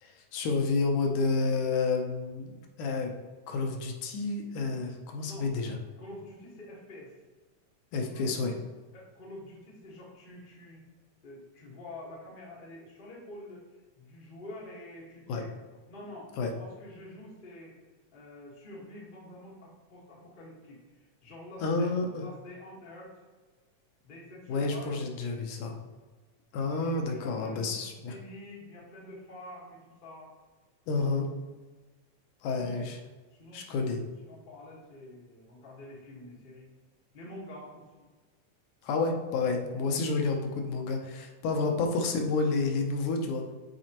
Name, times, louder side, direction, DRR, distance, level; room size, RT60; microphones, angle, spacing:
voice 1, 0.0-3.1 3.5-5.8 7.9-8.5 15.3-15.4 16.4-16.5 21.6-22.3 24.5-25.8 26.5-28.1 30.9-31.3 32.4-33.0 33.5-34.0 38.8-43.5, left 3 dB, 80° left, 3 dB, 2.2 m, -30 dB
voice 2, 6.0-7.1 8.1-8.6 8.9-10.8 11.2-13.6 13.9-15.5 15.9-17.8 18.1-21.9 22.2-23.2 24.0-24.9 26.8-30.3 32.5-32.8 33.3-36.7 37.1-37.8 41.5-41.6, left 1 dB, 40° left, -4 dB, 0.7 m, -47 dB
7.8 x 4.2 x 2.9 m, 1.3 s
omnidirectional pair, 3.6 m